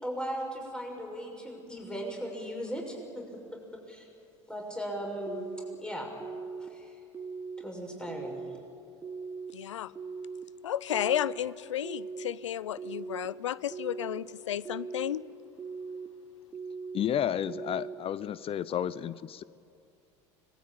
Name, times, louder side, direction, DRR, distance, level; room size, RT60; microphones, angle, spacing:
voice 1, 0.0-3.2 3.9-4.1 4.5-5.4 5.8-6.1 6.6-6.9 7.6-8.4, equal, 5° left, 1 dB, 6.1 m, -37 dB
sound 1, 5.3-5.8 6.2-6.7 7.1-7.6 8.1-8.6 9.0-9.5 10.0-10.4 10.9-11.4 11.8-12.3 12.8-13.3 13.7-14.2 14.7-15.1 15.6-16.1 16.5-17.0 17.5-18.0, right 5 dB, 20° right, 1.5 m, -39 dB
voice 2, 9.5-9.9 10.6-15.2, left 11 dB, 85° left, 21 dB, 0.5 m, -33 dB
voice 3, 16.9-19.4, left 10 dB, 40° left, 19 dB, 0.6 m, -31 dB
25.5 x 19.5 x 8.7 m, 2.5 s
hypercardioid pair, 70°, 15 cm